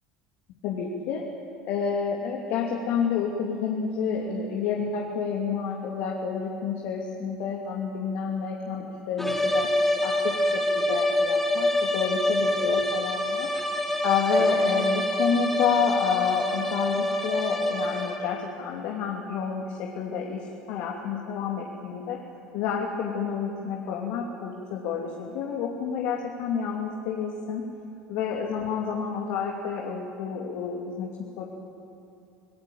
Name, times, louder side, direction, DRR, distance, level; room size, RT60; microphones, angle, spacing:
voice 1, 0.6-1.2 1.7-9.7 10.0-13.5 14.0-22.2 22.5-27.6 28.1-31.5, left 6 dB, 65° left, 0 dB, 3.0 m, -29 dB
sound 1, 9.2-18.4, left 1 dB, 5° left, 4.7 m, -26 dB
26.5 x 20.5 x 8.9 m, 2.6 s
hypercardioid pair, 75°, 4 cm